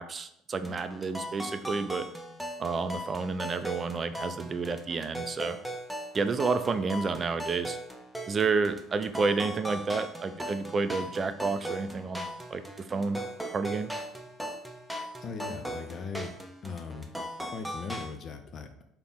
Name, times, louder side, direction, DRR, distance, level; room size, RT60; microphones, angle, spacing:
voice 1, 0.0-2.1 2.6-5.6 6.1-7.8 8.3-13.2 13.5-13.9, right 4 dB, 35° right, 10 dB, 0.4 m, -30 dB
sound 1, 0.6-18.2, equal, ahead, 0.7 m, -39 dB
voice 2, 15.2-16.3 16.6-17.1 17.5-18.8, left 5 dB, 45° left, 6 dB, 0.6 m, -39 dB
3.4 x 2.9 x 3.9 m, 0.74 s
hypercardioid pair, 60°, 0 cm